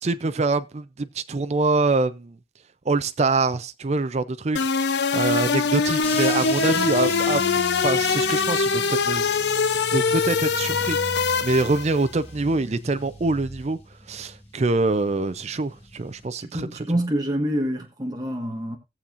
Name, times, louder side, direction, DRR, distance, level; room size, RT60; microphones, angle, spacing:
voice 1, 0.0-2.4 2.9-7.4 7.8-9.4 9.7-11.0 11.4-13.8 14.1-16.9, right 3 dB, 35° right, 0.5 m, -25 dB
sound 1, 4.6-12.0, left 5 dB, 65° left, 0.6 m, -23 dB
sound 2, 6.0-16.2, left 2 dB, 35° left, 2.2 m, -38 dB
voice 2, 16.4-18.8, equal, 20° right, 1.3 m, -26 dB
18.0 x 7.1 x 2.5 m
head